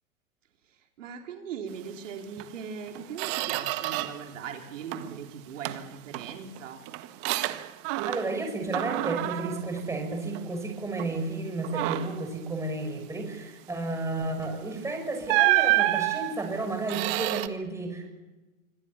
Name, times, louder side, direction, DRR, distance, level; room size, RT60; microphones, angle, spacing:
voice 1, 0.7-6.8, right 6 dB, 60° right, 3 dB, 3.9 m, -39 dB
Squeak, 2.4-2.5 2.9-4.3 4.6-5.2 5.6-8.4 8.7-10.6 11.0-11.2 11.6-12.3 14.4-14.6 15.3-17.5, right 17 dB, 35° right, 1.5 m, -29 dB
voice 2, 8.0-18.1, right 2 dB, 5° right, 3 dB, 6.1 m, -32 dB
26.0 x 25.5 x 7.1 m, 1.1 s
hypercardioid pair, 120°, 42 cm